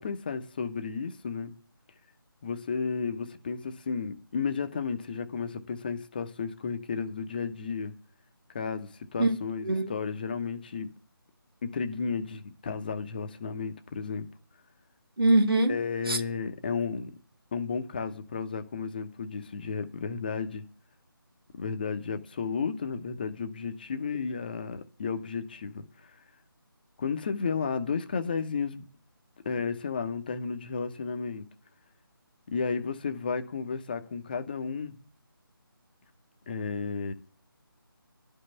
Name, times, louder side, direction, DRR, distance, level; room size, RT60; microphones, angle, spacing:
voice 1, 0.0-1.5 2.4-7.9 8.5-10.9 11.6-14.3 15.7-17.1 17.5-20.6 21.6-25.8 27.0-28.8 29.4-31.4 32.5-35.0 36.5-37.1, left 5 dB, 25° left, 0.9 m, -33 dB
voice 2, 15.2-15.7 16.1-16.2, right 2 dB, 75° right, 1.9 m, -22 dB
12.0 x 5.5 x 7.9 m
figure-of-eight pair, 155°, 12 cm